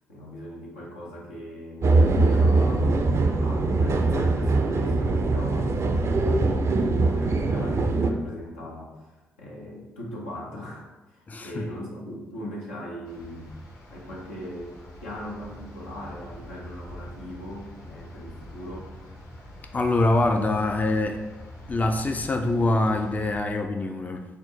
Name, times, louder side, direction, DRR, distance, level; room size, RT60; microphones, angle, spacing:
voice 1, 0.0-3.0 3.4-13.5 13.9-18.9, equal, 85° left, -4 dB, 0.8 m, -39 dB
sound 1, 1.8-8.1, right 3 dB, 45° right, 0.4 m, -22 dB
voice 2, 11.3-11.7 19.7-21.2 21.7-24.3, left 2 dB, 25° left, 5 dB, 0.4 m, -24 dB
sound 2, 13.1-23.4, left 1 dB, 55° left, 0.9 m, -44 dB
4.3 x 2.1 x 3.9 m, 1.1 s
hypercardioid pair, 40°, 6 cm